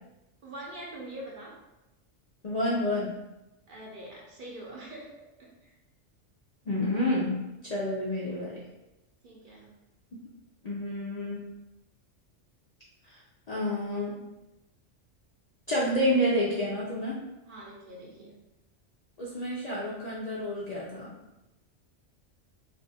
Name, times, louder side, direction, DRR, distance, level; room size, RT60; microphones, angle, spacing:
voice 1, 0.4-1.6 3.7-5.7 9.2-9.8 17.5-18.4, right 1 dB, 50° right, -4 dB, 0.7 m, -44 dB
voice 2, 2.4-3.2 6.7-7.4 7.6-8.7 10.6-11.4 13.1-13.2 13.5-14.2 15.7-17.2 19.2-21.2, left 1 dB, 60° left, -5 dB, 0.4 m, -29 dB
2.5 x 2.4 x 4.0 m, 0.98 s
omnidirectional pair, 1.3 m